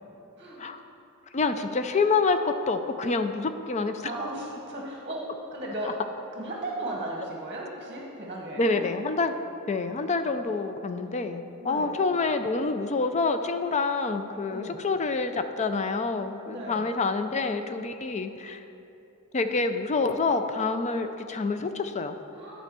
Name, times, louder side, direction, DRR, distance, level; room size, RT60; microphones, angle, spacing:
voice 1, 1.3-4.1 5.8-5.9 8.6-9.4 9.7-18.6 19.3-22.2, left 4 dB, 30° left, 8 dB, 0.4 m, -27 dB
voice 2, 4.0-6.0 6.3-8.9 11.6-11.9 14.5-14.8 16.5-16.8 22.3-22.6, right 1 dB, 30° right, -2 dB, 1.1 m, -36 dB
11.0 x 4.4 x 6.8 m, 2.9 s
head